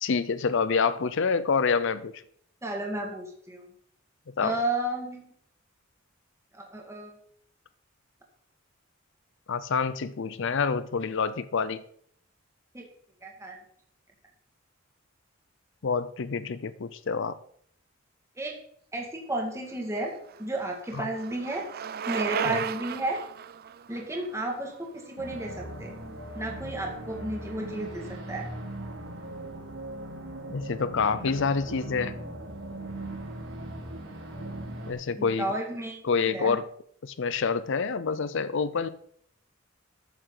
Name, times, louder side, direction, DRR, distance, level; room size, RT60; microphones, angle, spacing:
voice 1, 0.0-2.1 4.4-4.6 9.5-11.8 15.8-17.4 20.9-21.1 22.5-22.6 30.5-32.2 34.9-35.5 36.0-36.6 37.0-38.9, left 5 dB, 65° left, 14 dB, 0.6 m, -27 dB
voice 2, 2.6-3.7 4.4-5.3 6.5-7.2 12.7-12.9 13.2-13.6 18.4-18.6 18.9-21.7 22.1-23.2 23.9-25.9 26.3-28.5 35.2-36.6, right 1 dB, 15° right, 0 dB, 2.0 m, -33 dB
Bicycle, 19.8-25.7, right 8 dB, 50° right, 0.5 m, -36 dB
sound 1, 25.2-34.9, right 1 dB, 85° right, 5.1 m, -39 dB
13.0 x 9.2 x 3.9 m, 0.65 s
head